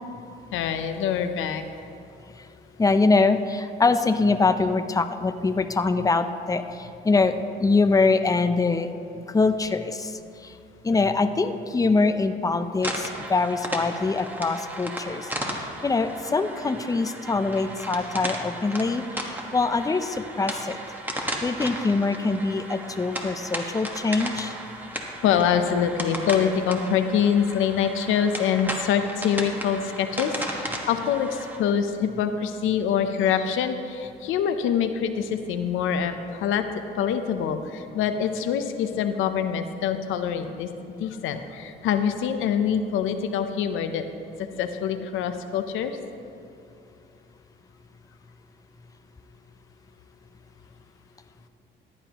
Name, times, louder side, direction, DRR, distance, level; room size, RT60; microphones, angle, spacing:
voice 1, 0.5-1.6 25.2-36.7 37.0-44.0 44.5-46.0, left 8 dB, 90° left, 8 dB, 0.7 m, -25 dB
voice 2, 2.8-7.3 7.6-8.9 9.3-10.5 10.8-20.8 21.4-24.5, left 3 dB, 15° left, 9 dB, 0.6 m, -24 dB
sound 1, 12.8-31.6, right 1 dB, 10° right, 1.4 m, -35 dB
15.0 x 10.5 x 3.0 m, 2.6 s
cardioid pair, 90°, 20 cm